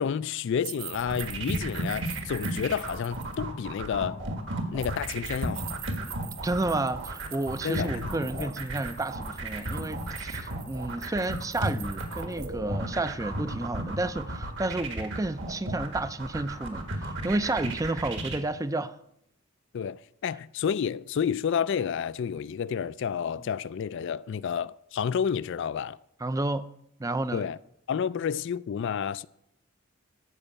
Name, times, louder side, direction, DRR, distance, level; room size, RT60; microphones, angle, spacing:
voice 1, 0.0-4.2 4.7-5.8 7.6-8.5 19.7-26.0 27.3-27.6 27.9-29.3, left 7 dB, 55° left, 0.3 m, -30 dB
sound 1, 0.6-3.4 4.8-12.5, right 11 dB, 80° right, 1.2 m, -45 dB
sound 2, 0.9-18.4, right 1 dB, 60° right, 1.8 m, -34 dB
voice 2, 6.4-19.0 26.2-26.7 27.0-27.4, right 2 dB, 15° right, 0.4 m, -31 dB
14.0 x 5.5 x 8.1 m
head